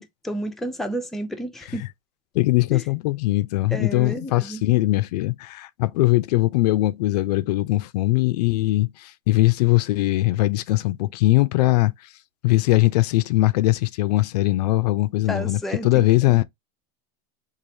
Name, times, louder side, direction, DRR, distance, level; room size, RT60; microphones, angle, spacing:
voice 1, 0.0-1.8 2.7-2.8 3.7-4.6 15.3-16.4, right 1 dB, ahead, 0.4 m, -31 dB
voice 2, 2.3-11.9 12.4-16.4, left 18 dB, 75° left, 0.4 m, -21 dB
3.2 x 2.4 x 2.6 m
supercardioid pair, 115°, 21 cm